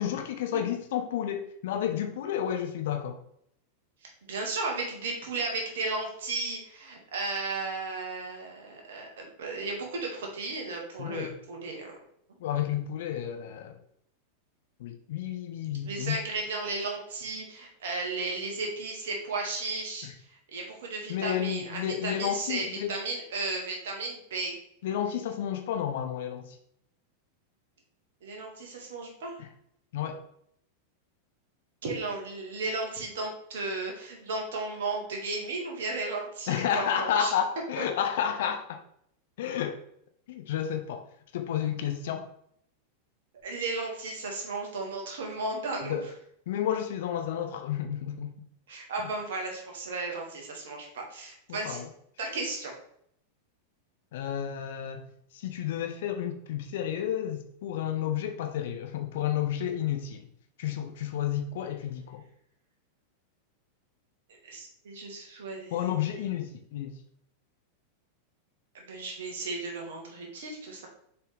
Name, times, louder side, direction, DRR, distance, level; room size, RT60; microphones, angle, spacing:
voice 1, 0.0-3.2 11.0-11.4 12.4-13.8 14.8-16.2 20.0-20.1 21.1-23.0 24.8-26.6 29.4-29.5 29.9-30.2 36.5-38.8 39.4-39.8 40.3-41.0 41.3-42.3 45.8-46.0 46.5-48.4 49.0-49.1 51.5-51.9 54.1-55.0 55.3-60.3 60.6-62.2 65.7-66.9, left 10 dB, 55° left, 0.8 m, -31 dB
voice 2, 4.3-12.0 15.8-24.5 28.2-29.4 31.8-37.3 43.4-46.0 48.7-51.8 52.2-52.7 64.5-66.3 68.7-70.9, right 3 dB, 60° right, 1.9 m, -34 dB
6.8 x 4.6 x 3.4 m
figure-of-eight pair, 90°, 0 cm